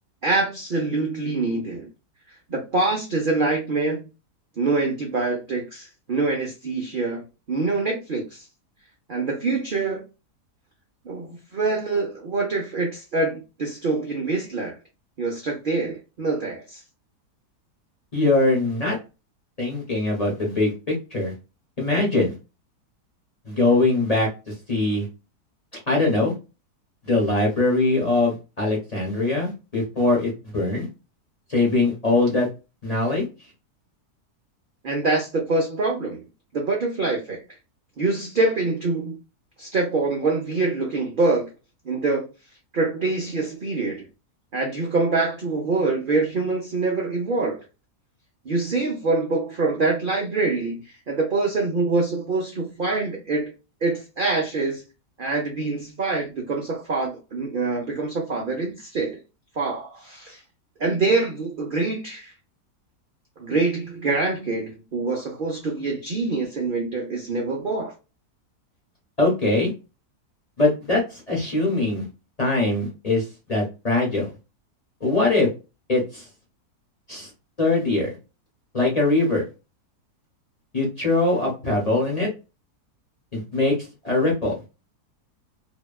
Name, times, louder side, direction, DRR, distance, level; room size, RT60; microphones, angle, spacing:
voice 1, 0.2-1.9 2.5-4.1 4.6-8.5 9.1-10.0 11.0-14.8 15.2-16.8 34.8-36.2 36.5-37.4 38.0-39.2 39.6-41.5 41.8-42.3 42.7-44.0 44.5-47.6 48.4-53.5 53.8-54.8 55.2-59.2 59.6-60.4 60.8-62.3 63.4-67.9, right 3 dB, 55° right, 0.6 m, -25 dB
voice 2, 18.1-19.0 19.6-21.3 21.8-22.3 23.4-25.1 25.9-26.3 27.0-30.9 31.5-32.5 32.8-33.2 69.2-69.7 70.6-72.1 72.4-74.3 75.0-75.5 75.9-76.2 77.1-77.3 77.6-78.1 78.7-79.4 80.7-82.3 83.3-83.7 84.0-84.5, left 2 dB, 30° left, 0.9 m, -22 dB
2.8 x 2.2 x 2.2 m
omnidirectional pair, 1.7 m